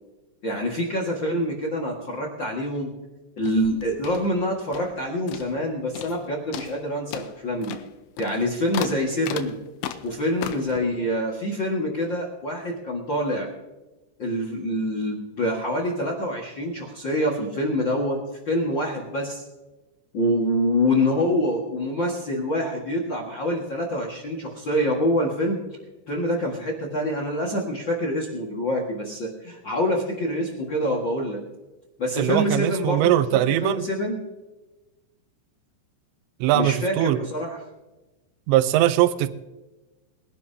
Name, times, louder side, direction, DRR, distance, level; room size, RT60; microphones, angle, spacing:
voice 1, 0.4-2.9 3.4-7.8 8.2-9.5 10.0-13.5 14.2-19.4 20.1-25.6 26.1-31.4 32.0-34.2 36.5-37.6, equal, 60° left, 0 dB, 1.2 m, -26 dB
sound 1, 3.4-5.0 5.3-5.7 5.9-6.2 6.5-10.8, left 9 dB, 90° left, 3.0 m, -36 dB
voice 2, 32.2-33.9 36.4-37.2 38.5-39.3, right 14 dB, 80° right, 13 dB, 2.9 m, -21 dB
22.0 x 12.0 x 2.8 m, 1.1 s
omnidirectional pair, 5.2 m